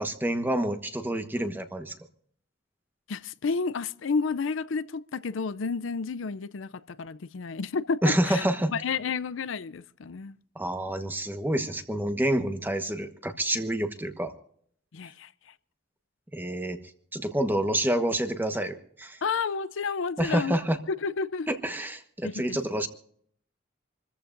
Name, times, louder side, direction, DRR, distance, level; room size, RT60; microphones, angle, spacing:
voice 1, 0.0-1.9 8.0-8.7 10.5-14.3 16.3-16.8 17.1-19.2 20.2-20.8 21.5-22.9, right 1 dB, 10° right, 1.2 m, -28 dB
voice 2, 3.1-8.5 8.7-10.3 14.9-15.3 19.2-20.6 20.9-21.5 22.2-22.6, left 5 dB, 80° left, 0.5 m, -31 dB
27.5 x 14.5 x 2.6 m
head